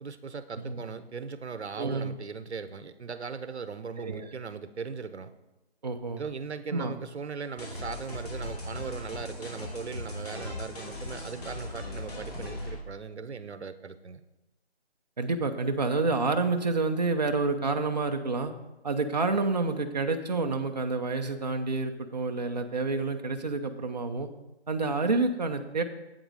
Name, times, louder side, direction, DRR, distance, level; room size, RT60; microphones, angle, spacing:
voice 1, 0.0-5.3 6.2-14.2, right 5 dB, 80° right, 12 dB, 0.9 m, -39 dB
voice 2, 1.8-2.2 4.0-4.3 5.8-6.2 6.7-6.9 15.2-18.5 18.8-24.3 24.7-25.8, right 3 dB, 40° right, 5 dB, 0.7 m, -28 dB
sound 1, 7.6-12.8, left 1 dB, 35° left, 2.7 m, -38 dB
8.1 x 7.8 x 4.8 m, 1.0 s
figure-of-eight pair, 170°, 33 cm